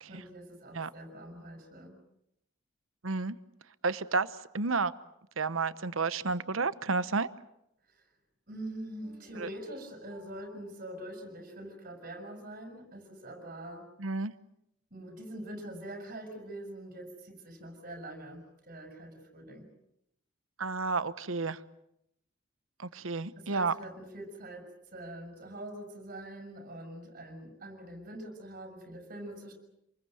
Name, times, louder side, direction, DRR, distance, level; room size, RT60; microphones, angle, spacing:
voice 1, 0.1-2.0 7.9-8.0 8.5-13.9 14.9-19.6 23.4-29.5, right 1 dB, 45° right, 3 dB, 7.1 m, -44 dB
voice 2, 3.0-3.4 3.8-4.3 4.5-4.9 5.4-7.3 9.4-9.5 14.0-14.3 20.6-21.6 22.8-23.7, right 4 dB, 85° right, 14 dB, 1.0 m, -31 dB
sound 1, 9.0-12.1, equal, 30° left, 7.7 m, -61 dB
27.5 x 21.5 x 7.9 m, 0.79 s
head